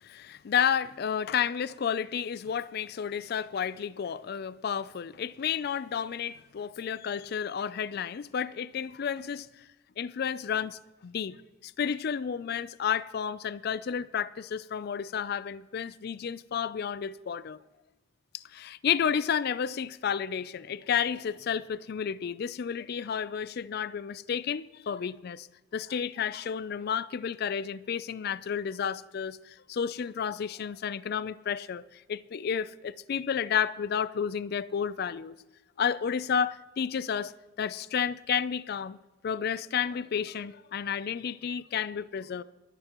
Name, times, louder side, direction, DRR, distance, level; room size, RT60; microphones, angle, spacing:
voice 1, 0.1-9.6 10.0-11.4 11.6-17.6 18.3-25.5 25.7-35.4 35.8-37.3 37.6-39.0 39.2-42.4, left 7 dB, 50° left, 0.4 m, -31 dB
22.0 x 10.0 x 3.0 m
head